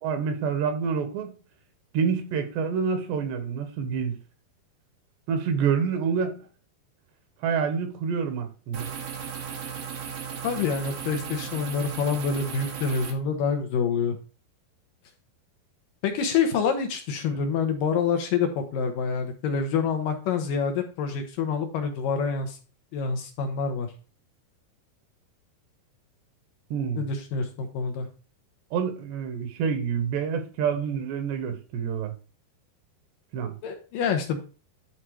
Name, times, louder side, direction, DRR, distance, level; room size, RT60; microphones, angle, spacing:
voice 1, 0.0-1.3 1.9-4.2 5.3-6.4 7.4-8.9 26.7-27.1 28.7-32.1 33.3-33.6, right 6 dB, 90° right, 3.5 m, -27 dB
sound 1, 8.7-13.1, right 7 dB, 70° right, 3.4 m, -36 dB
voice 2, 10.4-14.2 16.0-22.6 22.9-23.9 27.0-28.1 33.6-34.4, left 6 dB, 70° left, 2.3 m, -27 dB
11.5 x 4.2 x 4.7 m
omnidirectional pair, 4.7 m